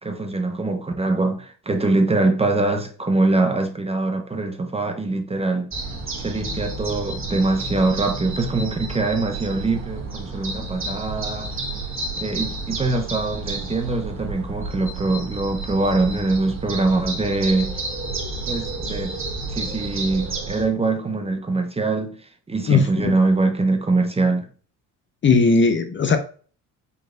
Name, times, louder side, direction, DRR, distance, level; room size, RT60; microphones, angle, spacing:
voice 1, 0.0-5.7 6.2-11.5 12.2-17.7 18.5-19.2 19.5-22.2 22.5-24.5, right 2 dB, 15° right, 0.7 m, -23 dB
sound 1, 5.7-20.6, right 3 dB, 35° right, 1.8 m, -31 dB
voice 2, 22.7-23.2 25.2-26.2, left 4 dB, 30° left, 0.6 m, -18 dB
5.4 x 3.9 x 2.3 m
cardioid pair, 100°, 38 cm